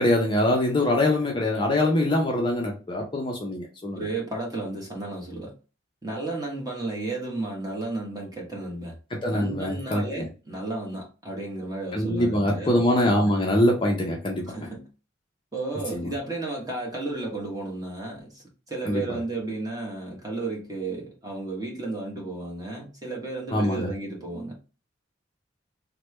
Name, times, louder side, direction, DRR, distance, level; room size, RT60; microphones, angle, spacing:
voice 1, 0.0-4.0 9.2-10.0 11.9-14.5 15.9-16.1 18.8-19.2 23.5-23.9, left 1 dB, 25° left, 0.5 m, -23 dB
voice 2, 3.9-5.5 6.0-9.0 9.3-12.8 13.2-13.3 14.4-14.9 15.5-24.6, right 2 dB, 20° right, 1.0 m, -33 dB
3.2 x 2.2 x 3.0 m
head